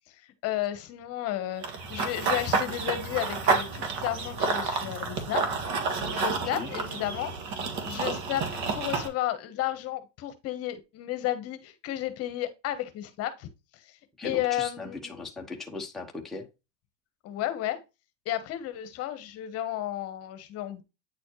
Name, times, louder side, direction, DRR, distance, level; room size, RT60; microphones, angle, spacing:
voice 1, 0.4-1.6 1.9-5.5 6.0-7.3 7.9-13.5 14.2-15.2 17.2-17.8 18.2-20.8, left 13 dB, 40° left, 1.2 m, -32 dB
Run / Bird vocalization bird call bird song, 1.6-9.1, right 4 dB, 50° right, 1.9 m, -30 dB
voice 2, 14.2-16.5, left 3 dB, ahead, 1.0 m, -38 dB
9.0 x 4.2 x 3.1 m
supercardioid pair, 130°, 37 cm